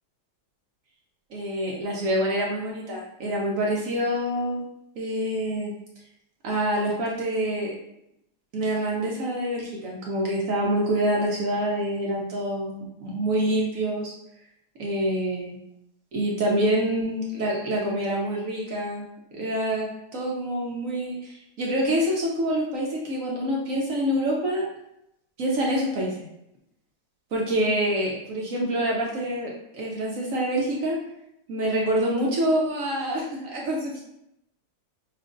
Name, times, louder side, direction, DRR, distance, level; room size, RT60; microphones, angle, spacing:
voice 1, 1.3-4.6 5.0-5.7 6.4-7.8 8.5-14.1 14.8-15.6 16.1-19.1 19.3-24.7 25.4-26.2 27.3-31.0 31.5-34.0, right 1 dB, 60° right, -3 dB, 0.9 m, -26 dB
5.7 x 2.5 x 2.5 m, 0.81 s
omnidirectional pair, 1.9 m